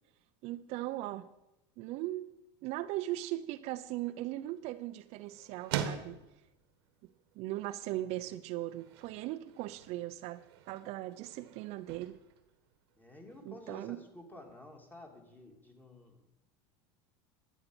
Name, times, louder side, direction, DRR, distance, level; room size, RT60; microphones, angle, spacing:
voice 1, 0.4-1.3 1.8-2.3 2.6-6.2 7.4-12.2 13.4-14.0, right 15 dB, 55° right, 10 dB, 0.6 m, -39 dB
sound 1, 3.7-13.4, right 9 dB, 90° right, 1.4 m, -45 dB
voice 2, 7.9-8.4 13.0-16.3, left 1 dB, 15° left, 3 dB, 2.2 m, -52 dB
12.0 x 8.4 x 6.1 m, 0.90 s
supercardioid pair, 125°, 13 cm